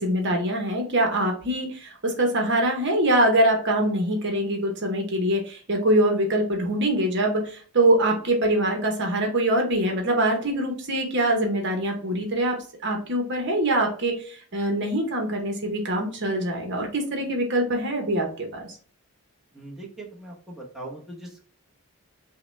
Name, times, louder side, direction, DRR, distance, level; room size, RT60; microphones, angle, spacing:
voice 1, 0.0-12.6 12.8-18.7, right 1 dB, 55° right, 2 dB, 0.9 m, -24 dB
voice 2, 19.5-21.5, right 2 dB, ahead, -4 dB, 0.9 m, -40 dB
5.6 x 2.2 x 3.2 m, 0.42 s
head